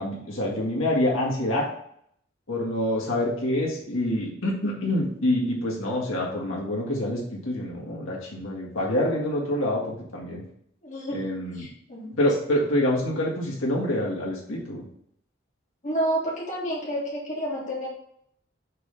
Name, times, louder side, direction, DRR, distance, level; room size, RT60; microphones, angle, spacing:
voice 1, 0.0-1.7 2.5-10.4 11.1-11.6 12.2-14.8, left 1 dB, 90° left, -3 dB, 1.7 m, -26 dB
voice 2, 10.8-12.1 15.8-17.9, right 1 dB, 35° left, -5 dB, 1.8 m, -30 dB
6.6 x 3.3 x 5.2 m, 0.68 s
head